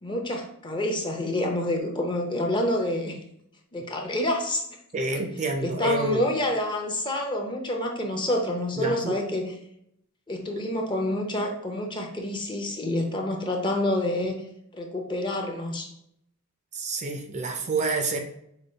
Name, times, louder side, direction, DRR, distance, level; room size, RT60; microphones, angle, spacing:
voice 1, 0.0-3.2 3.7-4.6 5.6-9.5 10.3-14.4 14.7-15.9, left 1 dB, 20° left, 2 dB, 0.6 m, -28 dB
voice 2, 4.9-6.2 8.8-9.2 10.6-10.7 16.7-18.2, right 2 dB, 35° right, 4 dB, 0.4 m, -28 dB
5.0 x 2.3 x 4.3 m, 0.73 s
head